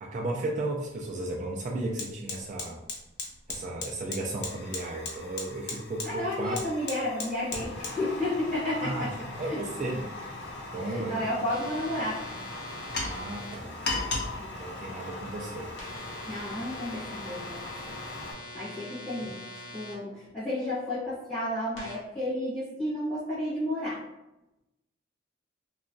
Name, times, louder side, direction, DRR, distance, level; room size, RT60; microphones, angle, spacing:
voice 1, 0.0-2.8 3.5-6.6 8.7-9.1 9.3-10.0 10.7-11.3 13.0-13.7 14.6-15.7 18.7-18.8, right 2 dB, 40° right, -1 dB, 0.3 m, -34 dB
Fire, 0.9-1.0 1.3-18.3, left 2 dB, 55° left, 0.5 m, -38 dB
voice 2, 6.0-9.1 9.4-9.6 10.8-12.2 14.4-14.5 16.3-17.7 18.5-19.4 19.7-24.0, left 1 dB, ahead, -18 dB, 1.2 m, -32 dB
sound 1, 11.5-13.6 15.8-19.9 21.8-22.0, left 1 dB, 90° left, 0.9 m, -43 dB
2.9 x 2.3 x 2.5 m, 0.94 s
head